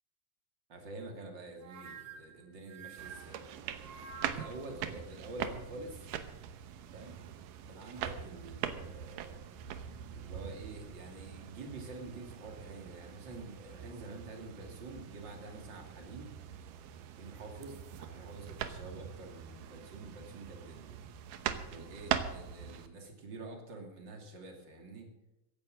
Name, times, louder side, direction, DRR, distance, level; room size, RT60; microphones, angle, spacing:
voice 1, 0.7-3.4 4.3-6.1 6.9-7.2 7.7-9.4 10.1-16.3 17.1-21.0 21.7-25.1, right 2 dB, 35° right, 3 dB, 3.0 m, -47 dB
sound 1, 1.6-4.7, right 6 dB, 70° right, 2.8 m, -49 dB
sound 2, 3.0-22.9, right 9 dB, 90° right, 2.6 m, -42 dB
15.5 x 10.5 x 6.4 m, 0.92 s
omnidirectional pair, 3.7 m